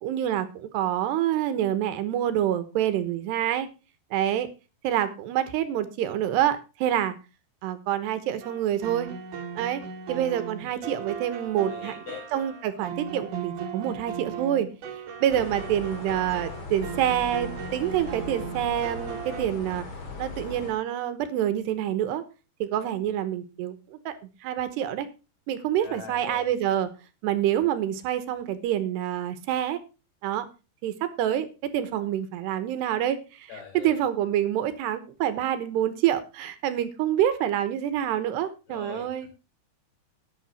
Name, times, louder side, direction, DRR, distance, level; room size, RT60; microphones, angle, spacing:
voice 1, 0.0-3.7 4.1-4.5 4.8-7.1 7.6-9.1 9.6-9.8 10.1-11.9 12.3-14.7 15.2-19.8 20.2-22.2 22.6-24.1 24.4-25.1 25.5-26.9 27.2-29.8 30.2-30.5 30.8-31.5 31.7-33.5 33.7-39.3, right 11 dB, 75° right, 12 dB, 3.1 m, -27 dB
sound 1, 8.4-19.5, right 6 dB, 55° right, 2.7 m, -37 dB
voice 2, 11.6-12.3 25.8-26.5 33.5-34.0 38.7-39.1, left 7 dB, 70° left, 3 dB, 6.6 m, -41 dB
sound 2, 15.3-20.7, left 3 dB, 35° left, 2.5 m, -39 dB
12.0 x 9.4 x 4.2 m, 0.30 s
omnidirectional pair, 5.1 m